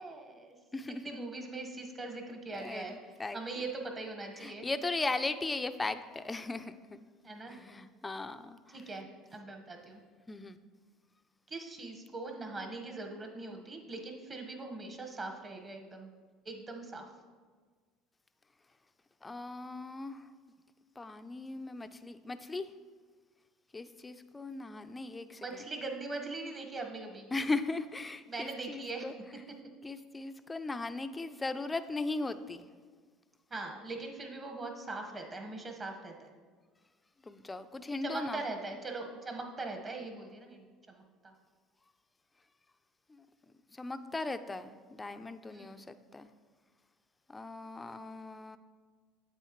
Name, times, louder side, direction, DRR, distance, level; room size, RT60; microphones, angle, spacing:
voice 1, 0.0-0.5 1.0-3.0 3.3-4.7 7.2-7.6 8.7-9.1 9.3-10.0 11.5-16.1 16.4-17.0 25.4-27.3 28.3-29.0 29.5-29.6 33.5-36.3 38.0-41.3 45.5-45.8, right 3 dB, 30° right, 3 dB, 1.4 m, -41 dB
voice 2, 0.7-1.3 2.5-3.6 4.4-7.0 7.5-8.8 10.3-10.6 19.2-20.3 21.0-22.7 23.7-25.6 27.3-29.1 29.8-32.7 37.2-38.4 43.1-43.3 43.7-46.3 47.3-48.6, left 3 dB, 15° left, 10 dB, 0.5 m, -38 dB
9.0 x 8.0 x 3.1 m, 1.5 s
supercardioid pair, 95°, 0 cm